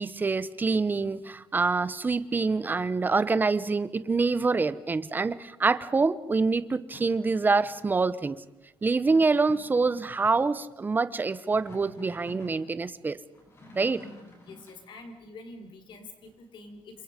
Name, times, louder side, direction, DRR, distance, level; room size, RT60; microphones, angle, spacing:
voice 1, 0.0-8.4 8.8-13.2 13.7-14.0, right 4 dB, 20° right, 15 dB, 0.9 m, -26 dB
sound 1, 6.9-8.0 9.0-10.6 11.3-12.6 13.3-14.8, left 1 dB, 30° left, 7.4 m, -50 dB
voice 2, 14.4-17.0, left 2 dB, 60° left, 6 dB, 4.4 m, -46 dB
29.0 x 27.0 x 5.2 m, 0.95 s
cardioid pair, 145°, 9 cm